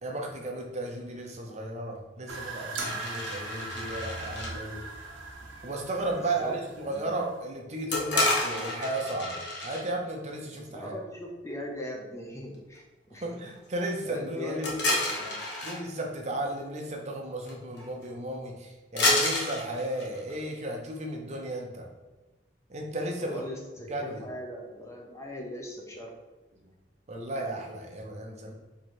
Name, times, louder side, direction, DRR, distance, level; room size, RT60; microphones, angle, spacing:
voice 1, 0.0-4.8 5.6-10.9 13.2-14.7 15.6-21.9 22.7-23.4 23.9-24.2 27.1-28.5, right 1 dB, 35° right, 1 dB, 0.6 m, -34 dB
sound 1, 2.3-7.4, right 3 dB, 90° right, 0.9 m, -40 dB
sound 2, 2.8-4.5 7.9-9.9 14.6-15.8 17.5-17.6 17.8-18.0 19.0-20.4, left 2 dB, 60° left, 1.0 m, -29 dB
voice 2, 6.1-6.6 6.9-7.1 10.7-12.8 13.1-13.4 14.0-15.4 23.2-26.1, left 1 dB, 15° left, -1 dB, 0.6 m, -40 dB
3.7 x 3.1 x 4.3 m, 1.1 s
head